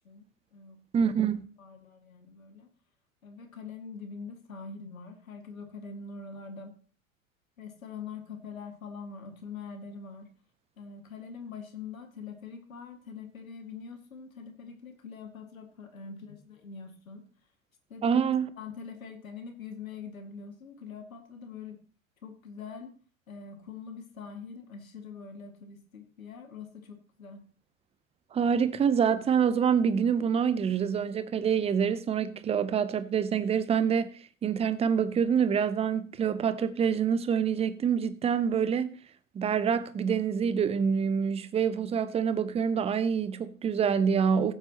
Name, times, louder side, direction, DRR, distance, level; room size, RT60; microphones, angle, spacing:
voice 1, 0.9-1.5 18.0-18.5 28.3-34.1 34.4-38.9 39.3-44.5, right 7 dB, 15° right, 0.6 m, -26 dB
voice 2, 1.6-2.7 3.2-6.8 7.6-10.3 10.8-17.2 17.9-18.2 18.6-21.8 22.2-22.9 23.3-27.4, left 5 dB, 80° left, 1.9 m, -44 dB
15.5 x 7.8 x 2.9 m
figure-of-eight pair, 85°, 41 cm